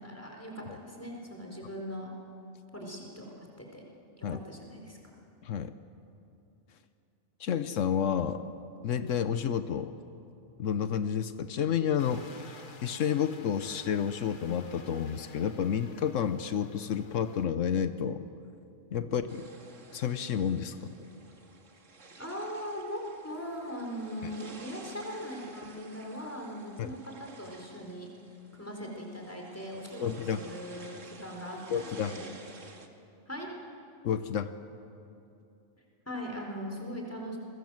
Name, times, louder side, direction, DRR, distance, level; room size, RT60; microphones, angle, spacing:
voice 1, 0.0-2.1 2.7-3.8 4.2-5.1 22.2-28.1 28.5-30.1 30.4-32.3 33.3-33.5 36.1-37.4, equal, 10° left, 0 dB, 4.4 m, -40 dB
voice 2, 5.4-5.7 7.4-8.4 8.8-9.9 10.6-18.2 18.9-19.4 19.9-20.9 24.2-24.3 26.8-27.0 30.0-30.4 31.7-32.1 34.0-34.5, left 8 dB, 85° left, 11 dB, 1.2 m, -30 dB
sound 1, 12.0-17.5, left 3 dB, 45° left, 1.5 m, -52 dB
sound 2, 19.3-32.9, right 3 dB, 80° right, 2.2 m, -52 dB
29.0 x 21.5 x 7.7 m, 2.7 s
omnidirectional pair, 1.3 m